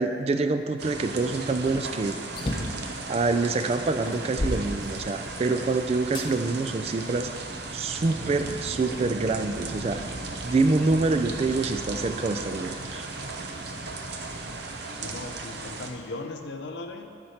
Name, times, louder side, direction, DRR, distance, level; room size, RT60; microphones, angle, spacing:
voice 1, 0.0-2.2 3.1-7.3 7.7-10.0 10.4-13.1, right 3 dB, 30° right, 9 dB, 0.3 m, -26 dB
sound 1, 0.8-15.9, right 3 dB, 60° right, 0.7 m, -36 dB
sound 2, 2.4-2.9 3.5-3.6 4.1-5.5 6.1-6.3 7.0-8.1, left 1 dB, 25° left, 0.7 m, -33 dB
voice 2, 14.8-17.2, left 2 dB, 65° left, 5 dB, 0.7 m, -38 dB
11.5 x 4.4 x 5.7 m, 2.4 s
head